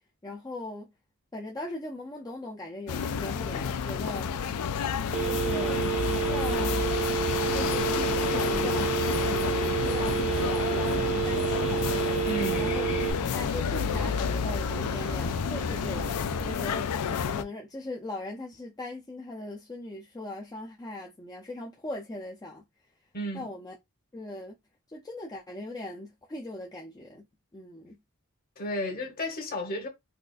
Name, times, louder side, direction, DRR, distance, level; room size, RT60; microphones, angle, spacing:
voice 1, 0.2-0.9 1.3-4.4 5.2-5.8 6.1-6.8 7.5-11.9 12.6-12.8 13.3-16.1 16.4-22.6 23.3-23.7 24.1-24.5 24.9-27.3 27.5-28.0, left 2 dB, 15° left, 0.4 m, -39 dB
sound 1, 2.9-17.4, left 7 dB, 85° left, 0.4 m, -30 dB
Telephone, 5.1-13.1, right 11 dB, 30° right, 0.6 m, -29 dB
sound 2, 5.1-16.6, right 1 dB, 70° right, 0.7 m, -40 dB
voice 2, 12.2-12.8 23.1-23.5 28.6-29.9, equal, 40° left, 1.2 m, -33 dB
4.1 x 2.4 x 2.4 m
head